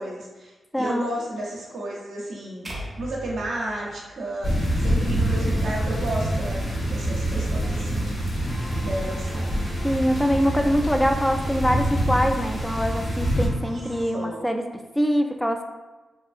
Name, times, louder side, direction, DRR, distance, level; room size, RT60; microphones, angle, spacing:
voice 1, 0.0-4.5 4.8-8.2 8.8-9.7 13.6-14.5, right 1 dB, 80° right, -5 dB, 0.6 m, -33 dB
voice 2, 0.7-1.1 9.8-14.6 14.9-15.6, equal, 10° left, 5 dB, 0.3 m, -23 dB
sound 1, 2.6-4.9, equal, 40° right, 0.6 m, -39 dB
sound 2, 4.4-13.5, equal, 65° left, 1.4 m, -26 dB
sound 3, 8.5-14.0, right 1 dB, 30° left, 1.0 m, -39 dB
2.7 x 2.3 x 2.4 m, 1.2 s
supercardioid pair, 40°, 0 cm